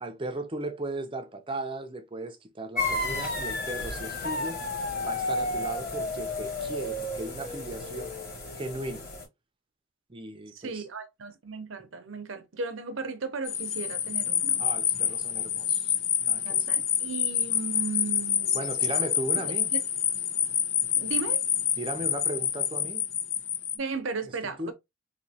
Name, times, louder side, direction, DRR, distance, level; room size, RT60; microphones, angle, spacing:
voice 1, 0.0-4.6 5.0-8.1 8.6-9.1 10.1-10.8 14.6-15.9 16.2-16.7 18.5-19.7 21.8-23.0 24.3-24.7, right 2 dB, 25° right, 0.6 m, -36 dB
sound 1, 2.8-9.3, left 2 dB, 45° left, 2.7 m, -32 dB
voice 2, 10.5-14.6 16.4-18.9 19.4-19.8 20.9-21.4 23.7-24.7, right 4 dB, 65° right, 0.7 m, -36 dB
sound 2, 13.4-23.7, left 9 dB, 60° left, 0.7 m, -27 dB
4.1 x 2.8 x 2.8 m
head